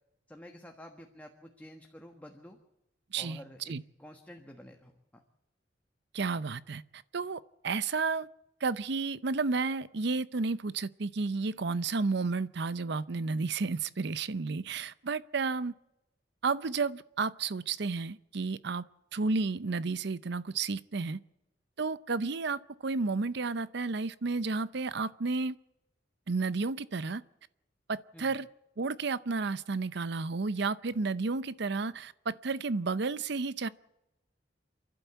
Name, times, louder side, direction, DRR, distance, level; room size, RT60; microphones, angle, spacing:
voice 1, 0.3-2.6 3.2-3.7 4.0-5.2 28.1-28.3, equal, 10° left, 1.3 m, -50 dB
voice 2, 6.1-8.3 8.6-15.7 16.4-18.8 19.1-21.2 21.8-25.6 26.3-27.2 27.9-28.5 28.8-33.7, right 4 dB, 65° right, 0.6 m, -32 dB
28.5 x 11.5 x 8.1 m
head